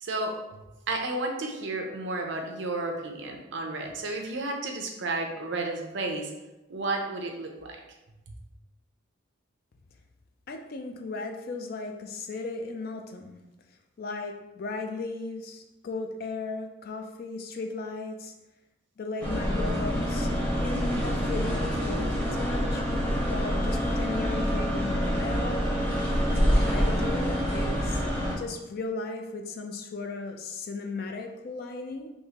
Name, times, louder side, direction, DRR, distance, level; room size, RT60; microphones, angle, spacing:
voice 1, 0.0-6.3 6.7-7.8, right 2 dB, 60° right, 2 dB, 0.5 m, -32 dB
voice 2, 10.5-13.4 14.0-18.3 19.0-20.3 20.6-22.9 23.3-25.7 26.3-28.1 28.3-32.1, left 3 dB, 50° left, 5 dB, 0.3 m, -36 dB
sound 1, 19.2-28.3, equal, 10° left, 0.7 m, -26 dB
3.5 x 2.7 x 2.8 m, 0.98 s
head